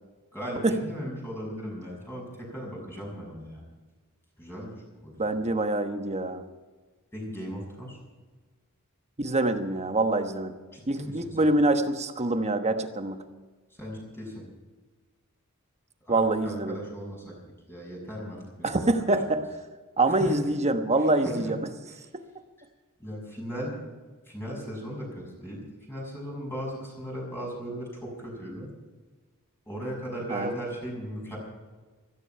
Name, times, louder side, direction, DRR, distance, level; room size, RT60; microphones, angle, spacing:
voice 1, 0.3-3.6 4.4-4.7 5.0-5.2 7.1-8.0 10.7-11.4 13.8-14.4 16.0-17.3 17.7-18.9 20.1-20.4 21.0-21.5 21.9-22.0 23.0-23.8 24.3-28.7 29.6-31.4, equal, 10° left, -2 dB, 6.7 m, -37 dB
voice 2, 5.2-6.4 9.2-10.5 10.9-13.2 16.1-16.8 18.6-19.5 20.0-21.6 30.3-30.6, right 2 dB, 30° right, 7 dB, 1.1 m, -25 dB
16.5 x 14.5 x 5.6 m, 1.3 s
head